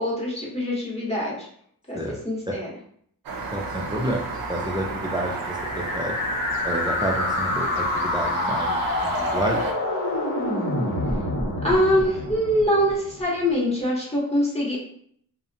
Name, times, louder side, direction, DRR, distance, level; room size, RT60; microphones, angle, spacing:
voice 1, 0.0-1.5 1.9-2.0 2.2-2.7 11.6-14.8, equal, 15° left, -7 dB, 0.9 m, -23 dB
sound 1, 3.3-9.7, right 3 dB, 80° right, 0.5 m, -33 dB
voice 2, 3.5-6.2 6.6-9.7, equal, 15° right, -1 dB, 0.3 m, -29 dB
sound 2, 5.3-13.3, left 1 dB, 60° left, 0.8 m, -27 dB
2.6 x 2.1 x 2.6 m, 0.63 s
wide cardioid pair, 100°, 35 cm